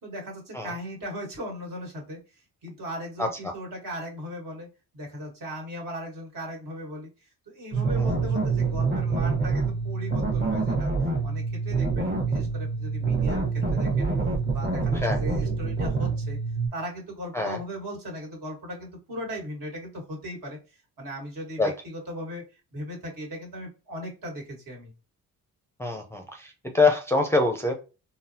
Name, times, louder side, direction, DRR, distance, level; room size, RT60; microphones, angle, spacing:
voice 1, 0.0-4.7 4.9-13.4 13.7-14.1 14.5-16.4 16.7-24.9, equal, 60° right, -1 dB, 1.6 m, -38 dB
voice 2, 3.2-3.5 8.0-8.1 14.9-15.2 17.3-17.6 21.6-21.7 25.8-27.7, left 3 dB, 5° left, 2 dB, 0.5 m, -25 dB
sound 1, 7.7-16.7, right 4 dB, 30° right, 1.1 m, -26 dB
3.9 x 2.1 x 2.6 m, 0.32 s
cardioid pair, 75°, 38 cm